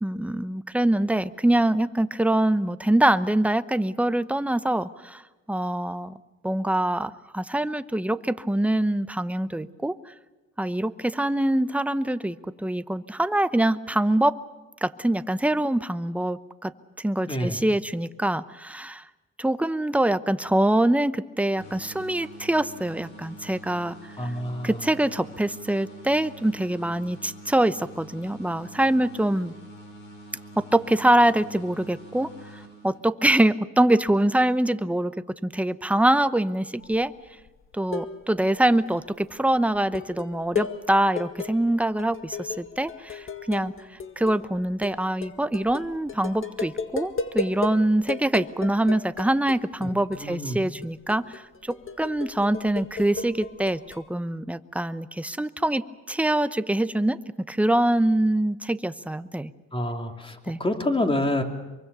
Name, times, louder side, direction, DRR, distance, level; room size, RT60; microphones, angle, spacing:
voice 1, 0.0-5.2 5.5-6.2 6.4-10.1 10.6-14.4 14.8-16.7 17.0-19.0 19.4-24.0 24.2-24.3 24.6-29.5 30.6-35.1 35.4-37.1 37.7-43.7 44.2-57.2 57.5-59.5 60.5-60.6, right 1 dB, 5° right, 13 dB, 0.8 m, -24 dB
sound 1, 21.6-33.3, right 1 dB, 85° left, 5.3 m, -45 dB
voice 2, 24.2-24.7 49.8-49.9 50.2-50.6 59.7-60.3 60.6-61.4, left 1 dB, 15° left, 4 dB, 2.9 m, -27 dB
sound 2, 36.8-37.1 37.5-38.4 38.7-39.1 39.7-47.8 48.1-50.3 50.5-54.1, left 4 dB, 45° left, 1.9 m, -35 dB
24.5 x 23.5 x 6.9 m, 1.2 s
cardioid pair, 90°, 30 cm